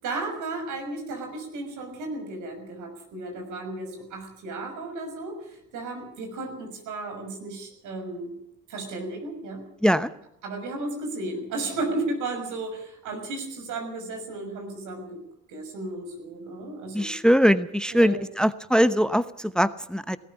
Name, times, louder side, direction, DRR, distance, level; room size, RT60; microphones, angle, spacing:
voice 1, 0.0-8.3 8.7-9.6 10.4-15.1 15.5-17.1 17.9-18.2, right 2 dB, 85° right, 4 dB, 6.5 m, -34 dB
voice 2, 16.9-20.2, equal, 5° left, 13 dB, 0.9 m, -21 dB
19.0 x 14.0 x 10.0 m, 0.74 s
cardioid pair, 90°, 30 cm